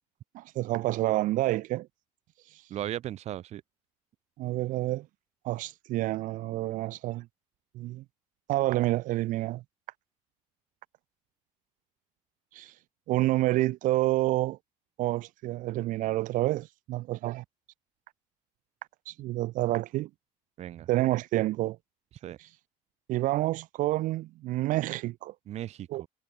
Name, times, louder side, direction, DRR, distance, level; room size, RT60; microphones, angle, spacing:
voice 1, 0.3-1.9 4.4-5.1 5.4-7.3 7.7-8.0 8.5-9.6 12.5-12.7 13.1-14.6 15.0-17.4 19.1-20.1 20.9-21.8 23.1-25.3 25.9-26.0, right 17 dB, 70° right, 3.1 m, -28 dB
voice 2, 2.7-3.6 20.6-20.9 22.2-22.4 25.5-26.1, right 12 dB, 50° right, 3.2 m, -37 dB
cardioid pair, 155°, 14 cm